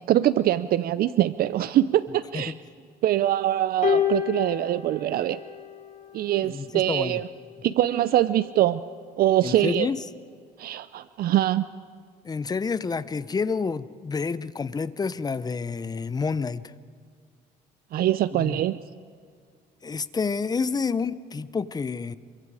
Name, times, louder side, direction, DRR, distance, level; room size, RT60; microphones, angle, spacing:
voice 1, 0.0-2.5 3.0-5.4 6.1-7.3 7.6-8.8 9.2-9.9 10.6-11.6 17.9-18.8, right 13 dB, 65° right, 15 dB, 0.6 m, -23 dB
sound 1, 3.8-6.3 7.3-7.5, left 8 dB, 45° left, 3.2 m, -28 dB
voice 2, 6.4-7.2 9.4-10.0 12.2-16.7 18.3-18.6 19.8-22.1, left 5 dB, 25° left, 16 dB, 0.7 m, -29 dB
27.5 x 23.5 x 4.9 m, 2.1 s
cardioid pair, 110°, 17 cm